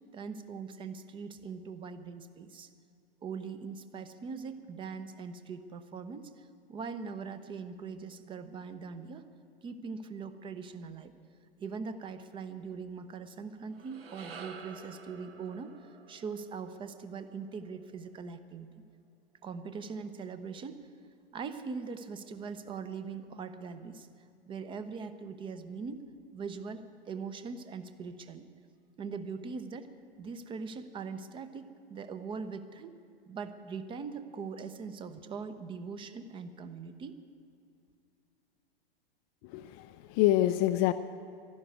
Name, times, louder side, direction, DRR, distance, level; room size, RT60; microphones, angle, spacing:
voice 1, 0.1-2.7 3.2-9.2 9.6-11.1 11.6-15.8 16.1-18.7 19.4-20.9 21.3-24.1 24.5-26.0 26.3-28.4 29.0-29.9 30.2-33.0 33.3-37.2, right 5 dB, 15° right, 11 dB, 0.7 m, -41 dB
sound 1, 13.6-18.0, right 5 dB, 75° right, 1.4 m, -50 dB
voice 2, 39.4-40.9, left 15 dB, 30° left, 9 dB, 0.4 m, -27 dB
11.5 x 11.5 x 9.4 m, 2.4 s
figure-of-eight pair, 105°, 30 cm